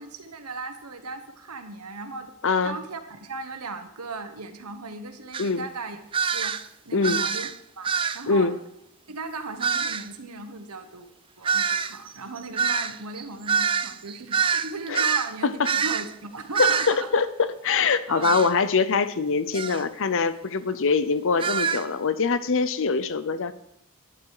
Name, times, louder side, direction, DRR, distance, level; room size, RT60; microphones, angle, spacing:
voice 1, 0.0-2.3 2.6-6.6 6.8-7.5 7.8-8.5 9.1-11.1 11.4-17.1 18.1-18.4 20.7-20.8, right 3 dB, 85° right, 8 dB, 1.4 m, -37 dB
voice 2, 2.4-2.8 5.4-5.6 6.9-7.2 8.3-8.6 14.9-15.0 15.4-15.7 16.6-17.3 17.6-23.5, left 4 dB, 60° left, 14 dB, 0.7 m, -23 dB
sound 1, 5.3-5.5 6.1-6.7 7.0-7.6 7.8-8.2 9.6-10.1 11.4-15.3 15.6-16.1 16.5-17.0 18.2-18.5 19.5-19.8 21.4-21.8, right 6 dB, 25° right, 0.4 m, -25 dB
11.5 x 11.0 x 4.8 m, 0.77 s
head